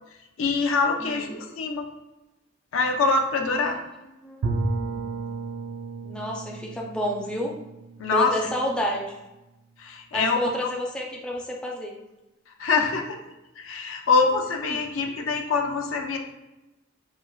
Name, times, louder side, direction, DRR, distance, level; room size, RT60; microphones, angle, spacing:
voice 1, 0.4-1.9 2.7-3.8 8.0-8.3 9.8-10.5 12.6-13.1 13.6-16.2, left 4 dB, 85° left, 3 dB, 0.4 m, -24 dB
voice 2, 1.0-1.5 3.4-3.8 4.2-5.1 6.0-7.5 8.1-9.1 10.1-11.9 14.7-14.8, equal, 5° left, -2 dB, 0.3 m, -30 dB
Bowed string instrument, 4.4-9.2, right 3 dB, 75° right, 0.3 m, -33 dB
4.3 x 2.0 x 2.2 m, 1.0 s
head